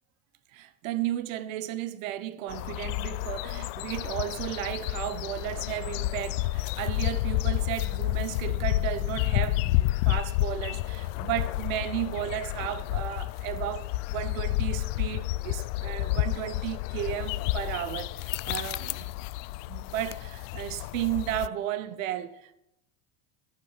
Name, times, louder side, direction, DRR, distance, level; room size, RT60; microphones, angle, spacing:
voice 1, 0.5-19.0 19.7-22.6, right 13 dB, 80° right, 1.2 m, -34 dB
sound 1, 2.5-21.5, left 18 dB, 70° left, 0.5 m, -30 dB
11.5 x 8.6 x 7.4 m
supercardioid pair, 145°, 40 cm